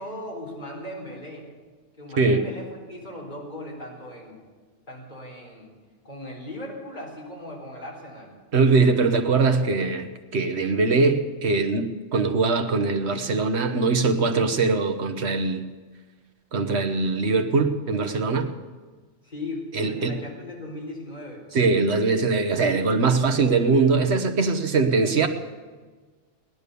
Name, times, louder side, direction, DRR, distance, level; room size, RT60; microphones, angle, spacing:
voice 1, 0.0-1.5 2.0-4.4 4.9-5.7 6.0-8.3 19.2-21.4, left 1 dB, 40° left, -3 dB, 4.2 m, -38 dB
voice 2, 8.5-15.7 16.5-18.5 19.7-20.1 21.5-25.3, right 4 dB, 65° right, 7 dB, 1.3 m, -22 dB
19.0 x 11.0 x 6.8 m, 1.4 s
omnidirectional pair, 1.2 m